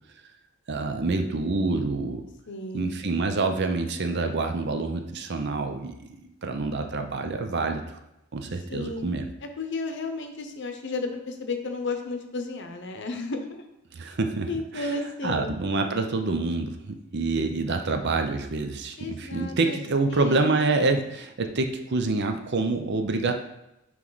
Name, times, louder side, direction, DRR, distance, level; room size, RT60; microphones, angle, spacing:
voice 1, 0.7-2.2 2.7-7.8 8.3-9.3 13.9-14.5 14.7-14.9 15.2-23.3, right 3 dB, 55° right, 6 dB, 0.6 m, -27 dB
voice 2, 2.5-3.0 8.4-9.1 9.6-13.6 14.5-15.5 19.0-19.8 20.1-20.5, left 3 dB, 55° left, 6 dB, 0.8 m, -33 dB
9.0 x 3.2 x 4.0 m, 0.87 s
head